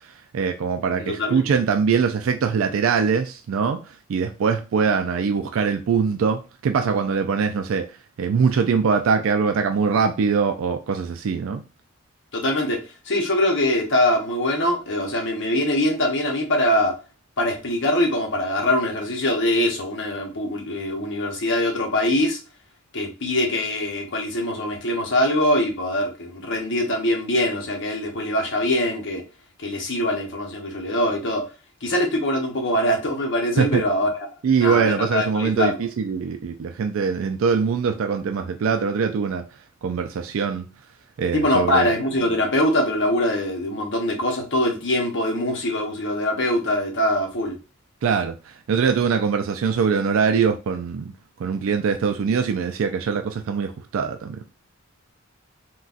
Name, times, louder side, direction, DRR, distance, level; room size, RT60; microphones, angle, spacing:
voice 1, 0.3-7.9 8.2-11.6 33.6-33.8 34.4-39.4 39.8-40.7 41.2-41.9 48.0-51.1 51.4-54.4, right 6 dB, 70° right, 0.3 m, -22 dB
voice 2, 1.0-1.5 12.3-17.0 17.4-22.4 22.9-29.2 29.6-31.5 31.8-34.3 34.6-35.9 41.2-47.6, left 1 dB, 60° left, 0.9 m, -23 dB
3.8 x 2.3 x 2.4 m
head